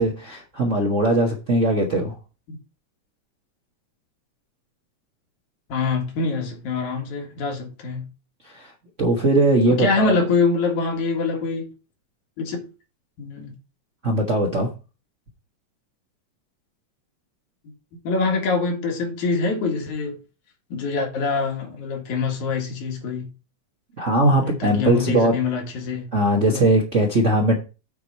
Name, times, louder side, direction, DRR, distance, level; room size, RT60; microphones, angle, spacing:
voice 1, 0.0-2.2 8.4-8.7 9.0-10.2 14.0-14.7 24.0-25.4 26.1-27.6, right 1 dB, 45° right, 1.0 m, -20 dB
voice 2, 5.7-8.0 9.7-11.7 12.4-12.7 13.2-13.5 18.0-20.2 20.7-23.3 24.4-26.1 26.5-26.7, left 4 dB, 80° left, 3.2 m, -25 dB
8.0 x 4.5 x 5.4 m
omnidirectional pair, 3.4 m